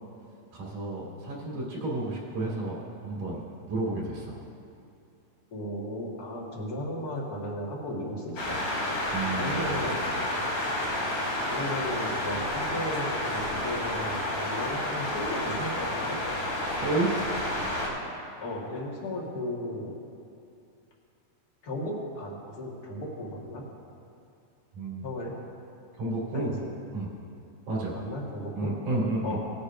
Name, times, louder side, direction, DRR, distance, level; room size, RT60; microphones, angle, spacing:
voice 1, 0.5-3.4 3.7-4.4 9.1-9.7 16.7-17.1 24.8-25.1 26.0-26.5 26.9-27.1 27.7-28.0 28.6-29.4, right 2 dB, 75° right, -5 dB, 3.9 m, -31 dB
voice 2, 5.5-8.6 9.3-10.0 11.4-16.2 18.4-20.0 21.6-23.7 25.0-25.3 26.3-26.7 27.9-28.7 29.2-29.4, left 1 dB, 40° left, -3 dB, 1.7 m, -35 dB
sound 1, 8.4-17.9, left 1 dB, 80° left, 4.2 m, -30 dB
18.5 x 10.0 x 2.6 m, 2.6 s
omnidirectional pair, 3.6 m